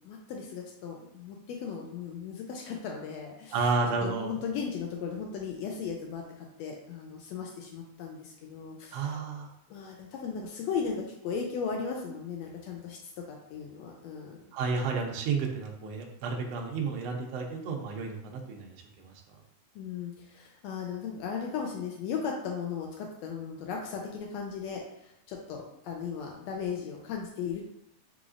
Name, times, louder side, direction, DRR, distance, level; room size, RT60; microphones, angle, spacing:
voice 1, 0.0-3.6 4.0-9.1 9.7-14.4 19.7-27.7, left 6 dB, 80° left, 0 dB, 1.5 m, -37 dB
voice 2, 3.5-4.4 8.9-9.5 14.5-19.1, right 4 dB, 80° right, 1 dB, 1.4 m, -31 dB
5.0 x 3.1 x 2.4 m, 0.77 s
omnidirectional pair, 3.5 m